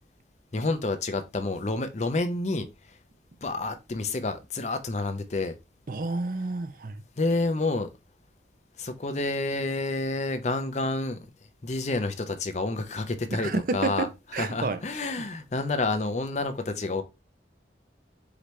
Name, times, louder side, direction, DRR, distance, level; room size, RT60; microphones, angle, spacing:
voice 1, 0.5-2.7 3.4-5.5 7.2-7.9 8.8-11.2 11.6-14.1 14.4-17.0, left 2 dB, 40° left, 0.6 m, -29 dB
voice 2, 5.9-7.0 13.4-14.8, right 3 dB, 50° right, 0.5 m, -30 dB
5.0 x 2.9 x 3.1 m
head